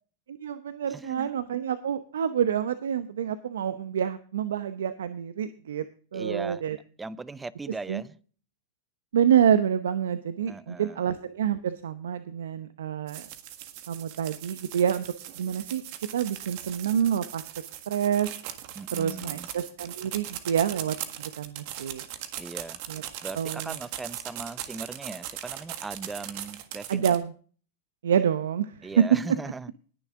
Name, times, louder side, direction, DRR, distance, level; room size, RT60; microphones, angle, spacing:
voice 1, 0.3-5.8 6.1-6.8 7.9-8.0 9.1-13.2 13.9-15.0 15.4-15.8 16.1-17.4 17.9-18.3 18.9-22.0 22.9-23.0 23.3-23.8 26.9-27.3 28.0-28.9, right 8 dB, 80° right, 0.7 m, -27 dB
voice 2, 0.9-1.3 6.1-6.6 7.0-8.2 10.5-11.0 18.7-19.5 22.4-22.8 23.2-27.1 28.8-29.7, right 3 dB, 10° right, 0.6 m, -38 dB
sound 1, 13.1-27.2, right 12 dB, 55° right, 1.7 m, -39 dB
20.5 x 7.1 x 3.7 m
hypercardioid pair, 115°, 0 cm